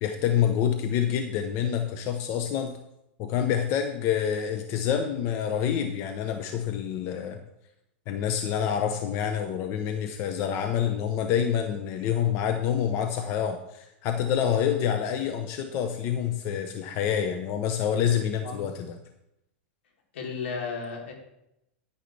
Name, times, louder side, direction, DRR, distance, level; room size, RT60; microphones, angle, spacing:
voice 1, 0.0-2.8 3.2-7.4 8.1-19.0, left 9 dB, 40° left, 6 dB, 0.9 m, -27 dB
voice 2, 20.1-21.1, left 5 dB, 85° left, 0 dB, 3.3 m, -34 dB
10.0 x 10.0 x 3.4 m, 0.83 s
supercardioid pair, 145°, 6 cm